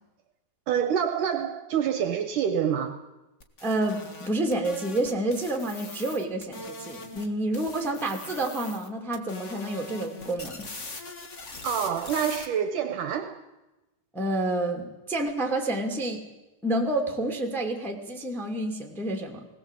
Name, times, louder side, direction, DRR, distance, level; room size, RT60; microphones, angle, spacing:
voice 1, 0.7-3.1 11.6-13.4, right 8 dB, 65° right, 2.3 m, -27 dB
sound 1, 3.4-7.3 7.5-8.9 9.1-12.4, left 3 dB, 80° left, 0.6 m, -41 dB
voice 2, 3.6-10.6 14.1-16.2 16.6-19.5, right 1 dB, ahead, 1.9 m, -29 dB
20.5 x 18.0 x 8.4 m
omnidirectional pair, 4.3 m